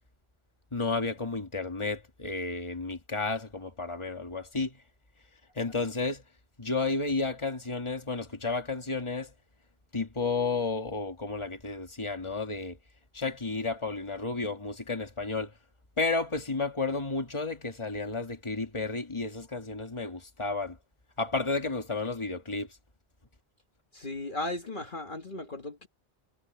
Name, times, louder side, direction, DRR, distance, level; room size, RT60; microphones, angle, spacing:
voice 1, 0.7-4.8 5.6-6.2 6.6-9.3 9.9-12.8 13.1-15.5 16.0-20.8 21.2-22.7, left 3 dB, 30° left, 2.1 m, -32 dB
voice 2, 23.9-25.9, left 2 dB, 50° left, 1.9 m, -36 dB
omnidirectional pair, 1.1 m